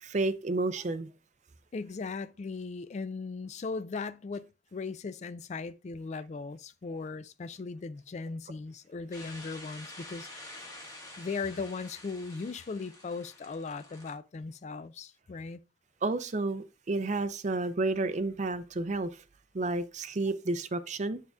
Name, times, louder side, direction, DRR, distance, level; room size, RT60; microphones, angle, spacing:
voice 1, 0.0-1.1 16.0-19.1 19.5-21.2, right 2 dB, 45° right, 0.5 m, -31 dB
voice 2, 1.7-10.7 11.2-15.6, left 4 dB, 40° left, 0.3 m, -38 dB
sound 1, 9.1-14.1, left 1 dB, 20° left, 1.5 m, -48 dB
8.1 x 6.5 x 2.3 m
head